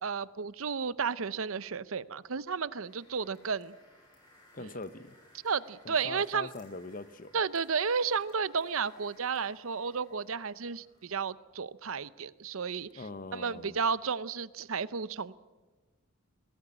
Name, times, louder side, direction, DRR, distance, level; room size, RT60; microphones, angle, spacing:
voice 1, 0.0-3.7 4.6-4.7 5.4-6.5 7.3-13.0 13.3-15.3, right 5 dB, 70° right, 17 dB, 0.7 m, -32 dB
sound 1, 2.9-11.1, left 1 dB, 20° left, 7.3 m, -62 dB
voice 2, 4.5-5.2 5.8-7.4 12.9-13.8, left 3 dB, 40° left, 14 dB, 0.8 m, -42 dB
21.0 x 17.5 x 8.8 m, 1.2 s
head